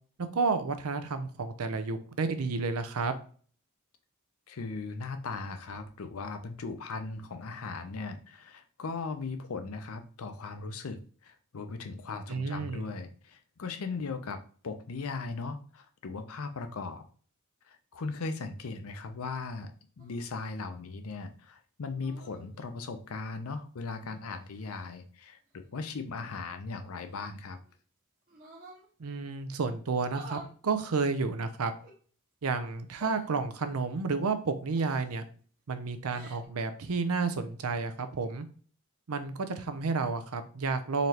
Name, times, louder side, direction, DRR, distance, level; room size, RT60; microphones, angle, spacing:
voice 1, 0.3-3.1 12.3-12.9 29.0-31.7 32.4-35.2 35.7-38.5 39.1-41.1, right 4 dB, 85° right, 9 dB, 0.6 m, -31 dB
voice 2, 4.5-17.0 17.7-19.7 20.0-27.6, left 4 dB, 80° left, 8 dB, 0.6 m, -38 dB
sound 1, 20.0-20.2 21.9-22.5 23.8-24.9 27.0-27.7 28.3-28.8 30.0-30.5 31.8-31.9 33.0-33.3 34.7-35.2 35.9-36.5, right 3 dB, 40° right, 1.1 m, -49 dB
4.0 x 3.2 x 2.9 m, 0.43 s
head